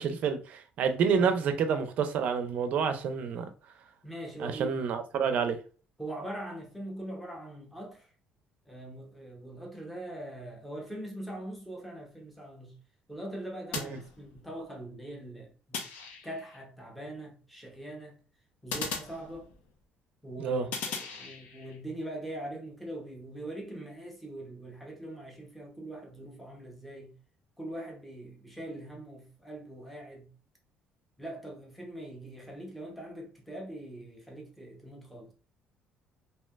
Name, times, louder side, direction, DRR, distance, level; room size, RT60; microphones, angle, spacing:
voice 1, 0.0-3.5 4.4-5.6 13.8-14.0 20.4-20.7, right 6 dB, 50° right, 0.5 m, -28 dB
voice 2, 1.1-1.6 4.0-4.8 6.0-8.1 8.7-12.7 13.1-15.8 16.2-18.2 18.6-19.5 20.2-27.1 27.6-30.3 31.2-35.3, right 1 dB, ahead, 0.7 m, -42 dB
sound 1, 13.7-14.6 15.7-16.6 18.7-19.8 20.7-21.8, left 5 dB, 70° left, 0.7 m, -39 dB
3.2 x 2.8 x 2.2 m
cardioid pair, 175°, 3 cm